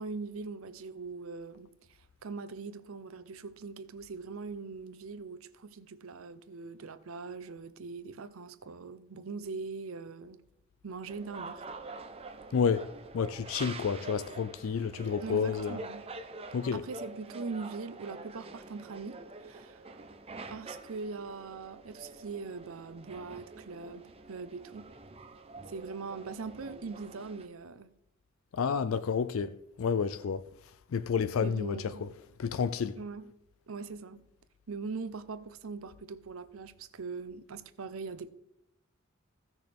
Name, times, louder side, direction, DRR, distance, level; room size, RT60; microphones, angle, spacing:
voice 1, 0.0-10.4 10.8-11.6 15.2-16.1 16.7-19.8 20.5-25.0 25.7-27.9 31.4-32.1 33.0-33.3 33.7-34.3 34.7-38.3, right 4 dB, 80° right, 0.7 m, -41 dB
sound 1, 11.1-27.5, right 3 dB, 30° right, 0.7 m, -46 dB
voice 2, 12.5-12.9 13.1-15.8 16.5-16.8 28.5-30.4 30.9-32.1 32.4-33.0, left 6 dB, 75° left, 0.4 m, -30 dB
16.0 x 6.2 x 3.4 m
head